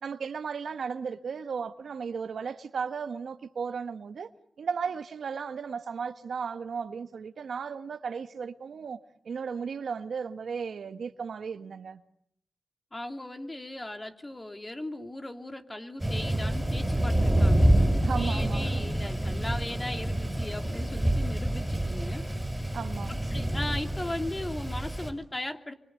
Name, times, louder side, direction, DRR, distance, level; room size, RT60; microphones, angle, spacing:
voice 1, 0.0-4.3 4.6-9.0 9.2-12.0 18.0-18.9 22.7-23.1, right 6 dB, 70° right, 1.4 m, -35 dB
voice 2, 12.9-22.2 22.6-22.8 23.1-25.7, left 1 dB, 20° left, 3.0 m, -38 dB
Thunder, 16.0-25.1, right 1 dB, 5° right, 6.5 m, -27 dB
29.0 x 24.5 x 8.3 m
cardioid pair, 55°, 0 cm